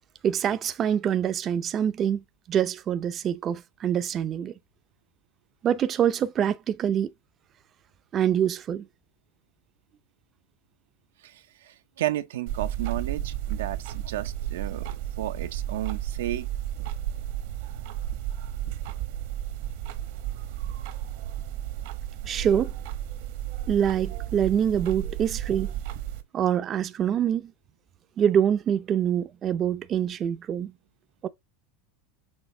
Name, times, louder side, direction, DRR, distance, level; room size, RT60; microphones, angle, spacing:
voice 1, 0.2-4.5 5.6-7.1 8.1-8.9 22.2-22.7 23.7-25.7 26.3-27.5 28.2-30.7 31.2-31.3, right 9 dB, 35° right, 0.6 m, -25 dB
voice 2, 11.2-16.5, right 13 dB, 85° right, 0.8 m, -33 dB
sound 1, 12.5-26.2, right 12 dB, 70° right, 1.2 m, -33 dB
6.4 x 3.9 x 3.8 m
supercardioid pair, 125°, 0 cm